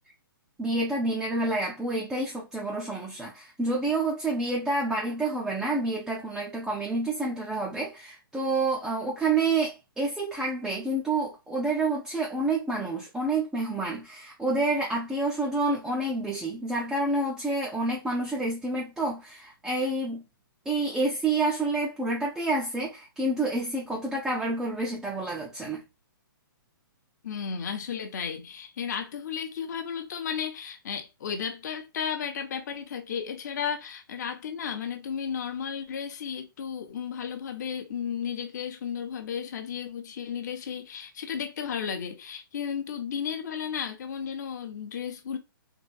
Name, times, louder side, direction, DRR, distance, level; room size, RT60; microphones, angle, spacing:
voice 1, 0.6-20.2 20.7-25.8, right 2 dB, 5° right, 0.4 m, -28 dB
voice 2, 27.2-45.4, left 7 dB, 50° left, 0.8 m, -34 dB
3.8 x 2.2 x 2.5 m
hypercardioid pair, 160°, 12 cm